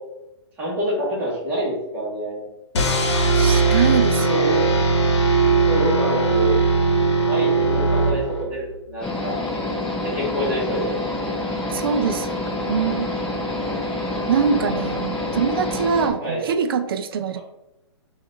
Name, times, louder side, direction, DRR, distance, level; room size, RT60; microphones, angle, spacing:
voice 1, 0.6-2.4 4.3-4.9 5.7-6.5 7.3-9.4 10.0-11.0 16.2-16.4 17.3-17.4, equal, 10° right, -7 dB, 1.2 m, -27 dB
sound 1, 2.7-8.6, right 3 dB, 75° left, 0.9 m, -19 dB
voice 2, 3.3-4.4 11.7-12.4 12.6-13.1 14.3-17.4, right 6 dB, 55° right, 9 dB, 0.4 m, -23 dB
sound 2, 9.0-16.1, left 2 dB, 5° left, 0.4 m, -27 dB
4.3 x 2.5 x 3.7 m, 0.94 s
hypercardioid pair, 170°, 15 cm